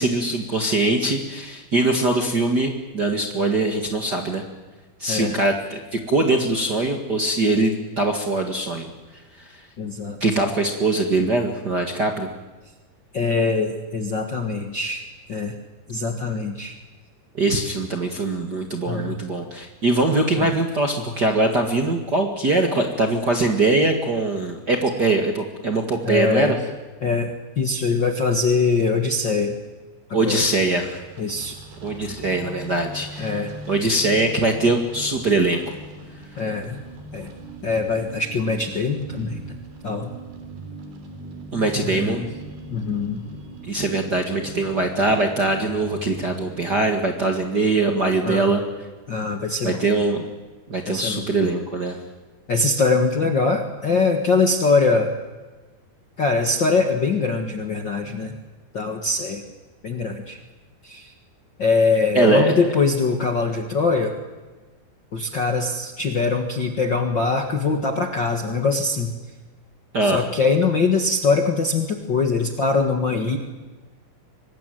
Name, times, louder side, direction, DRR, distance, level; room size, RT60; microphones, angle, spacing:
voice 1, 0.0-4.4 5.0-8.9 10.2-12.3 17.3-26.6 30.1-31.0 31.8-35.6 41.5-42.3 43.6-48.6 49.6-50.3 50.7-52.0 62.2-62.5 69.9-70.2, right 2 dB, 40° right, 3 dB, 1.7 m, -22 dB
voice 2, 5.1-5.4 9.8-10.2 13.1-15.0 15.3-15.5 15.9-16.7 18.9-19.2 20.4-20.5 26.0-26.5 27.0-29.6 30.2-30.4 31.2-31.6 33.2-33.5 36.4-36.8 37.1-37.3 37.6-39.6 39.8-40.1 41.8-42.3 42.7-43.2 48.2-48.5 49.1-49.8 50.9-51.3 52.5-55.1 56.2-58.4 58.7-59.4 59.8-60.4 60.8-61.1 61.6-64.1 65.1-69.1 70.0-73.4, left 4 dB, 45° left, 4 dB, 1.6 m, -22 dB
sound 1, 30.4-46.9, right 1 dB, 90° right, 5.3 m, -40 dB
24.5 x 19.5 x 9.3 m, 1.2 s
omnidirectional pair, 4.4 m